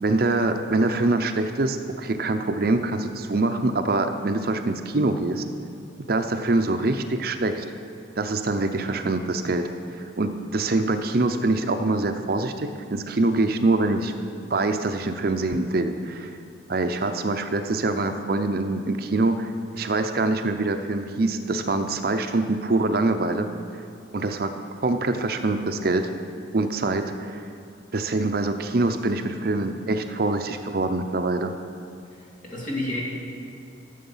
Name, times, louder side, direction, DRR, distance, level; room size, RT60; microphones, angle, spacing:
voice 1, 0.0-5.4 6.1-7.6 8.2-9.7 10.0-14.1 14.4-16.4 16.7-23.5 24.1-24.5 24.8-26.1 26.5-27.4 27.9-31.6, right 2 dB, 50° right, 7 dB, 0.5 m, -24 dB
voice 2, 32.1-33.0, left 1 dB, 45° left, -4 dB, 2.3 m, -31 dB
13.0 x 6.9 x 5.6 m, 2.6 s
head